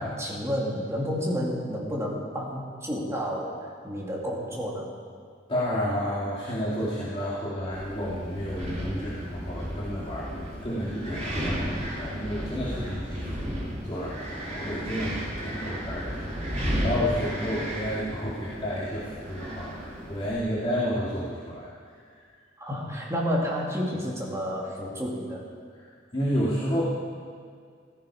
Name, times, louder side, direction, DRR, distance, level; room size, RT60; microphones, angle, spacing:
voice 1, 0.0-4.9 22.6-25.4, equal, 15° right, -3 dB, 2.7 m, -30 dB
voice 2, 5.5-22.2 25.7-26.8, equal, 30° left, -8 dB, 2.6 m, -31 dB
Wind, 7.7-20.3, equal, 40° right, 3.4 m, -33 dB
16.0 x 14.5 x 5.0 m, 2.1 s
head